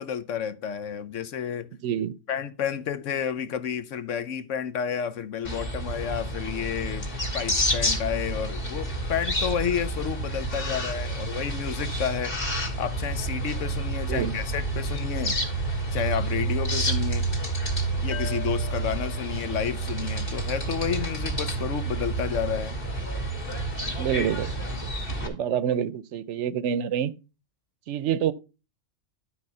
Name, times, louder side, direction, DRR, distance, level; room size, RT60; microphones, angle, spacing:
voice 1, 0.0-1.7 2.3-7.1 7.3-12.3 12.8-15.4 15.9-17.2 18.0-22.8, left 8 dB, 80° left, 1.1 m, -30 dB
voice 2, 1.8-2.2 14.1-14.4 24.0-24.6 25.2-27.1 27.9-28.3, right 9 dB, 70° right, 0.9 m, -27 dB
sound 1, 5.4-25.3, right 2 dB, 45° left, 2.4 m, -29 dB
sound 2, 18.1-21.6, left 8 dB, 30° left, 0.6 m, -43 dB
12.0 x 4.4 x 5.4 m
omnidirectional pair, 1.3 m